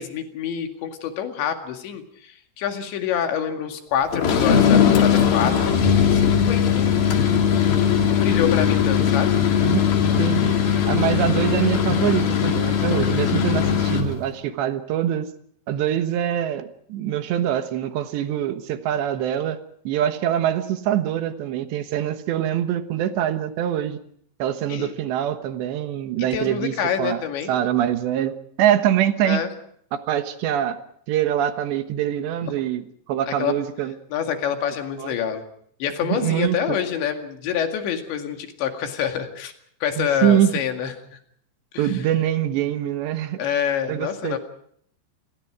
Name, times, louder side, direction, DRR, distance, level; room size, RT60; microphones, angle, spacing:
voice 1, 0.0-7.0 8.0-9.4 24.7-24.9 26.3-27.5 29.3-29.5 32.4-32.5 33.3-33.5 34.1-35.4 35.8-39.5 39.8-41.2 41.7-42.0 43.4-44.4, left 8 dB, 80° left, 5 dB, 4.4 m, -27 dB
sound 1, 4.1-14.2, left 8 dB, 60° left, 4.1 m, -19 dB
voice 2, 10.2-10.6 10.9-15.3 15.7-19.6 19.9-24.0 24.4-26.7 27.0-27.2 27.5-29.4 29.9-30.8 31.1-34.0 35.0-35.1 36.0-36.8 40.0-40.5 41.8-43.4 43.9-44.4, right 11 dB, 80° right, 9 dB, 3.5 m, -24 dB
29.0 x 20.5 x 4.9 m, 0.64 s
omnidirectional pair, 5.2 m